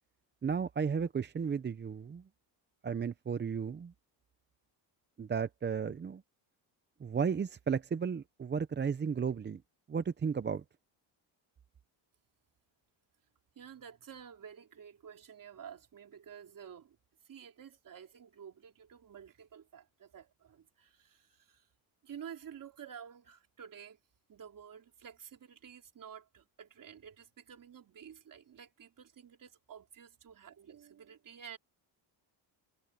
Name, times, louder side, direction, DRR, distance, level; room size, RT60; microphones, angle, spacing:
voice 1, 0.4-2.2 2.8-3.9 5.2-6.2 7.0-9.6 9.9-10.6, right 6 dB, 25° right, 0.7 m, -34 dB
voice 2, 13.6-17.0 17.2-21.7 22.0-24.0 24.3-31.6, right 8 dB, 45° right, 3.5 m, -51 dB
cardioid pair, 130°, 44 cm